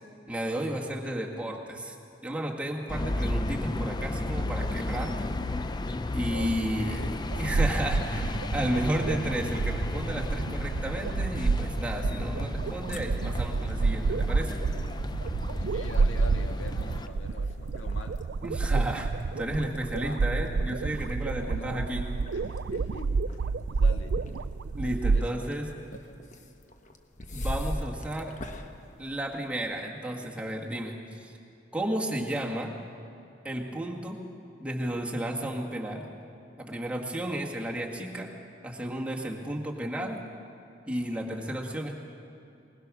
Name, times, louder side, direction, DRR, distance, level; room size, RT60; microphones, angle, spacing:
voice 1, 0.3-2.0 2.2-5.3 6.1-7.0 7.4-14.6 18.4-19.1 19.4-22.1 24.8-25.7 27.3-28.4 29.0-31.3 31.7-32.7 33.4-34.2 34.6-36.1 36.6-38.3 38.6-40.2 40.9-41.9, right 1 dB, 5° right, -1 dB, 1.9 m, -33 dB
voice 2, 1.3-1.8 6.3-7.3 8.7-9.1 15.6-18.2 18.5-18.7 20.0-20.3 21.2-23.2 23.7-24.2 25.1-25.4, left 2 dB, 85° left, 4 dB, 1.7 m, -44 dB
sound 1, 2.9-17.1, left 2 dB, 25° left, 0.6 m, -33 dB
sound 2, 7.3-25.2, right 4 dB, 65° right, 0.4 m, -29 dB
sound 3, 12.6-29.8, equal, 40° left, 1.2 m, -43 dB
21.0 x 20.5 x 6.3 m, 2.6 s
head